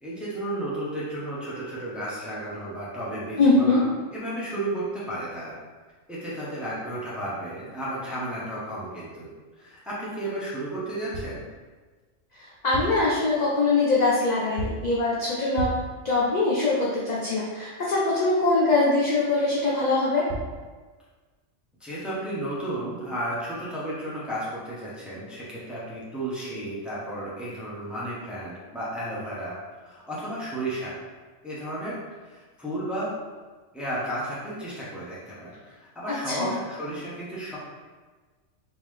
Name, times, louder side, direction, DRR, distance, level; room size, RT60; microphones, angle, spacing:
voice 1, 0.0-3.8 4.1-5.6 6.1-9.3 9.6-11.4 21.8-29.6 29.8-30.9 31.4-33.2 33.7-37.6, right 1 dB, ahead, -8 dB, 0.6 m, -33 dB
voice 2, 3.4-3.8 12.3-15.7 16.0-20.2 36.1-36.6, left 3 dB, 60° left, -6 dB, 0.4 m, -23 dB
sound 1, 11.1-11.5 12.6-13.1 14.6-14.9 15.6-16.0 20.0-20.1 20.3-20.6, right 2 dB, 80° right, 1.0 m, -33 dB
3.7 x 2.7 x 3.2 m, 1.4 s
omnidirectional pair, 1.4 m